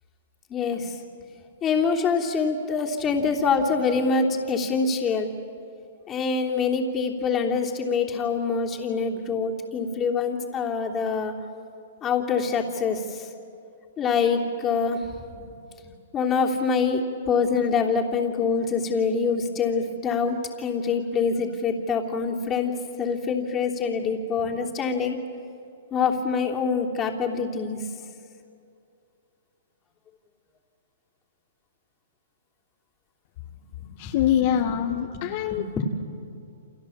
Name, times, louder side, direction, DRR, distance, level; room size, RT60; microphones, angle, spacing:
voice 1, 0.5-0.9 1.6-5.3 6.1-11.3 12.0-13.2 14.0-15.0 15.4-15.5 16.1-25.2 25.9-27.8 33.8-34.1 35.5-35.8, left 5 dB, 20° left, 0 dB, 3.3 m, -25 dB
voice 2, 34.0-35.8, left 10 dB, 45° left, 2 dB, 1.7 m, -24 dB
29.5 x 27.5 x 7.3 m, 2.5 s
hypercardioid pair, 145°, 0 cm